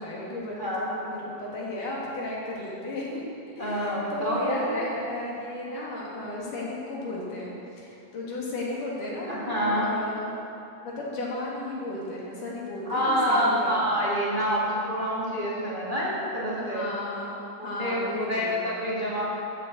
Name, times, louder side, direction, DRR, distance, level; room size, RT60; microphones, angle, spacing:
voice 1, 0.0-3.2 3.6-10.2 10.8-13.8 16.5-18.6, left 2 dB, 90° left, -5 dB, 4.4 m, -34 dB
voice 2, 0.6-1.0 3.6-5.0 9.3-9.9 12.9-16.8 17.6-19.2, equal, 15° right, -7 dB, 2.5 m, -27 dB
13.5 x 9.3 x 7.8 m, 2.7 s
omnidirectional pair, 3.5 m